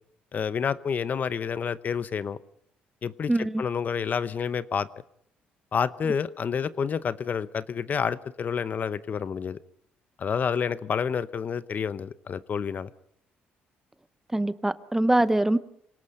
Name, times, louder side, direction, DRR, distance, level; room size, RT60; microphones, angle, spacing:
voice 1, 0.3-2.4 3.0-4.9 5.7-9.6 10.2-12.9, left 6 dB, 45° left, 0.8 m, -29 dB
voice 2, 3.3-3.6 14.3-15.6, right 1 dB, 10° right, 0.8 m, -23 dB
27.0 x 18.5 x 5.5 m
cardioid pair, 90°, 4 cm